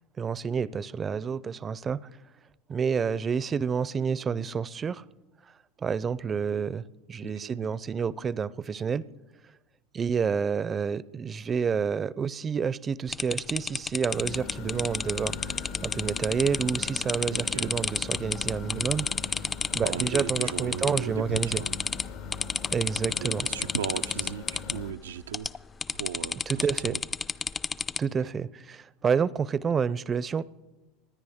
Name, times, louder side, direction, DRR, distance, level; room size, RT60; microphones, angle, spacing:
voice 1, 0.2-2.1 2.7-5.0 5.8-9.0 9.9-19.3 19.7-21.6 22.7-23.5 26.5-26.9 28.0-30.4, right 6 dB, 30° right, 0.5 m, -29 dB
voice 2, 7.2-7.7 17.3-17.8 19.8-21.8 23.1-25.5 25.9-27.0, right 8 dB, 90° right, 0.4 m, -37 dB
sound 1, 13.1-21.0 21.3-22.1 22.3-24.8 25.3-25.6 25.8-28.0, left 5 dB, 25° left, 0.5 m, -30 dB
sound 2, 14.1-24.9, left 4 dB, 70° left, 1.5 m, -40 dB
26.5 x 10.0 x 3.6 m
hypercardioid pair, 90°, 0 cm